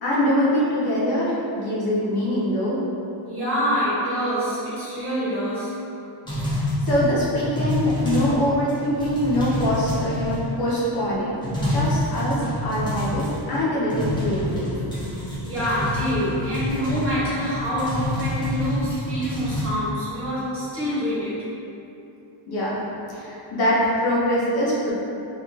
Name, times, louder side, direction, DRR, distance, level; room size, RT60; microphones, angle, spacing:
voice 1, 0.0-2.8 6.4-14.8 22.5-22.8 23.1-24.9, equal, 55° left, -8 dB, 0.7 m, -24 dB
voice 2, 3.3-5.7 15.1-15.2 15.4-21.4, equal, 30° right, -12 dB, 1.2 m, -26 dB
sound 1, 6.3-8.4 8.7-10.7 11.1-11.2 11.4-13.6 13.9-19.7, left 1 dB, 10° left, 0.4 m, -27 dB
3.8 x 2.4 x 2.2 m, 2.9 s
cardioid pair, 175°, 47 cm